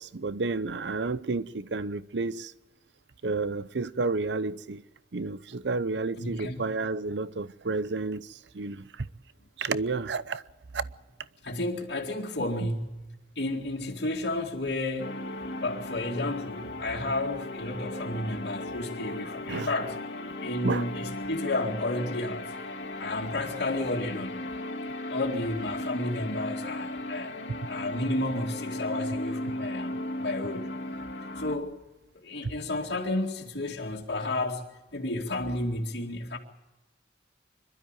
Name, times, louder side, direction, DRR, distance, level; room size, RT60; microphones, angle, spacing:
voice 1, 0.0-2.5 3.2-4.8 5.1-8.3 8.6-8.8 9.6-10.4 10.7-10.8 12.6-12.7 19.5-19.7 20.6-20.9, right 3 dB, 75° right, 0.7 m, -31 dB
voice 2, 6.2-6.6 11.4-15.2 15.6-20.0 20.4-22.5 23.0-24.5 25.1-27.3 27.7-30.7 31.3-31.8 32.1-36.4, left 2 dB, 70° left, 2.2 m, -32 dB
sound 1, 15.0-31.6, left 1 dB, 85° left, 2.3 m, -36 dB
25.5 x 12.5 x 8.9 m
head